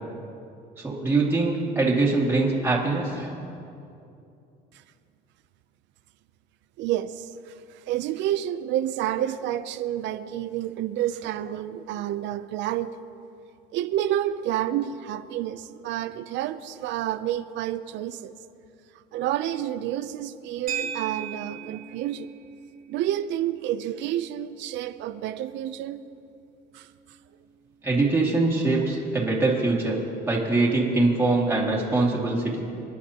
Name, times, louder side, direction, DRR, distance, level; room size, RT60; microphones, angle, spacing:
voice 1, 0.8-3.3 27.8-30.0 30.3-32.6, right 3 dB, 10° right, -5 dB, 2.3 m, -23 dB
voice 2, 6.8-13.0 13.7-18.3 19.1-22.3 22.9-26.0 26.7-26.9, right 12 dB, 70° right, 12 dB, 0.6 m, -29 dB
sound 1, 20.7-29.1, right 7 dB, 45° right, 1.8 m, -41 dB
27.5 x 10.0 x 2.9 m, 2.6 s
cardioid pair, 120°, 19 cm